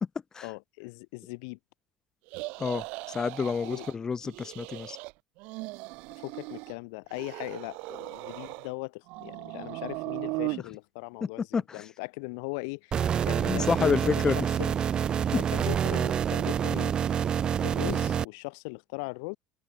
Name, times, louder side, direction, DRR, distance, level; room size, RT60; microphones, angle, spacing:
voice 1, 0.4-1.6 3.6-3.9 6.2-14.2 14.6-14.7 15.3-16.9 17.6-19.4, left 31 dB, 75° left, 4.2 m, -39 dB
sound 1, 2.3-3.9 4.2-5.1 5.4-6.8 7.1-8.7 9.1-10.6, right 26 dB, 70° right, 1.6 m, -38 dB
voice 2, 2.6-5.0 10.5-10.6 11.2-11.9 13.0-14.4 15.3-15.5, left 5 dB, 30° left, 4.0 m, -29 dB
sound 2, 12.9-18.2, right 8 dB, 40° right, 2.5 m, -27 dB
hypercardioid pair, 80°, 2 cm